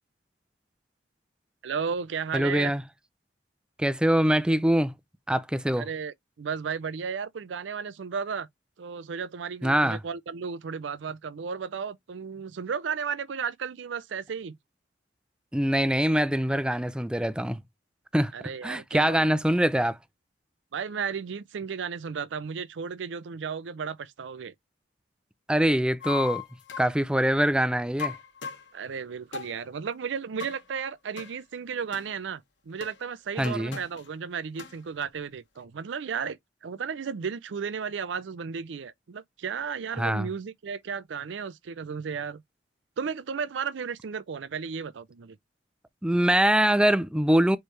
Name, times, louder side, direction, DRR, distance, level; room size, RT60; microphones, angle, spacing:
voice 1, 1.6-2.7 5.8-8.5 8.8-14.6 18.3-19.3 20.7-24.5 28.7-42.4 43.0-45.4, right 6 dB, 80° right, 0.5 m, -34 dB
voice 2, 2.3-2.8 3.8-4.9 5.3-5.9 9.6-10.0 15.5-17.6 18.1-18.3 18.6-20.0 25.5-26.4 26.8-28.1 33.4-33.8 40.0-40.3 46.0-47.6, right 1 dB, 5° right, 0.4 m, -23 dB
sound 1, 26.0-27.0 28.0-28.7 29.3-29.5 30.4-30.6 31.2-31.3 31.9-32.1 32.8-32.9 33.4-34.1 34.6-34.7, left 8 dB, 75° left, 1.1 m, -37 dB
4.6 x 3.1 x 3.1 m
head